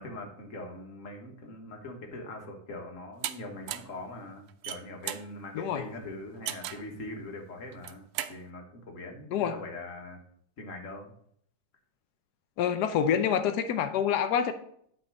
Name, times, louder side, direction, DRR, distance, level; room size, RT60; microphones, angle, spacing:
voice 1, 0.0-10.2 10.6-11.1, left 2 dB, 40° left, 1 dB, 1.5 m, -42 dB
sound 1, 3.2-3.3 3.7-4.0 4.5-5.3 6.5-6.9 7.7-8.4, right 12 dB, 85° right, 1.5 m, -35 dB
voice 2, 5.5-5.9 9.3-9.5 12.6-14.5, left 8 dB, 85° left, 8 dB, 0.9 m, -27 dB
8.8 x 3.7 x 6.0 m, 0.66 s
omnidirectional pair, 2.4 m